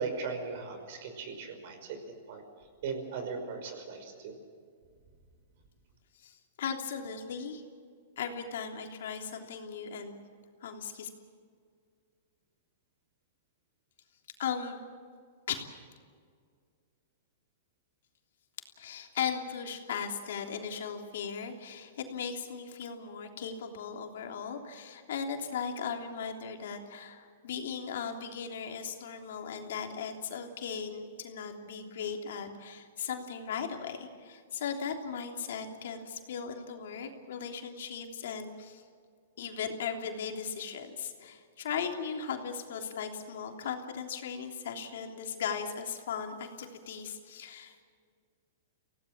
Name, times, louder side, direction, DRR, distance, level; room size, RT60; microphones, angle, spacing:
voice 1, 0.0-2.4 2.8-4.3, right 5 dB, 55° right, 7 dB, 5.4 m, -38 dB
voice 2, 6.2-7.6 8.2-10.2 10.6-11.1 14.4-14.8 15.5-15.7 18.8-38.8 39.4-47.8, left 6 dB, 75° left, 3 dB, 3.3 m, -37 dB
25.5 x 17.5 x 7.4 m, 2.1 s
hypercardioid pair, 150°, 0 cm